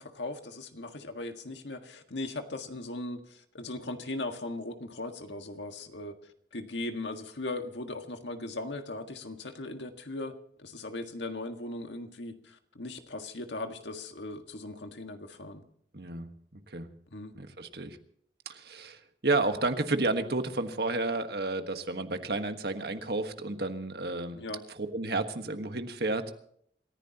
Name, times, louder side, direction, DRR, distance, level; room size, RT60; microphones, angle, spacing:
voice 1, 0.0-6.2 6.5-10.3 10.6-15.6 17.1-17.3 24.3-24.6, left 2 dB, 90° left, 6 dB, 1.7 m, -38 dB
voice 2, 15.9-16.3 16.7-16.9 17.3-18.0 18.4-24.4 24.7-26.3, right 2 dB, 65° right, 7 dB, 1.5 m, -31 dB
27.5 x 15.0 x 2.9 m, 0.65 s
head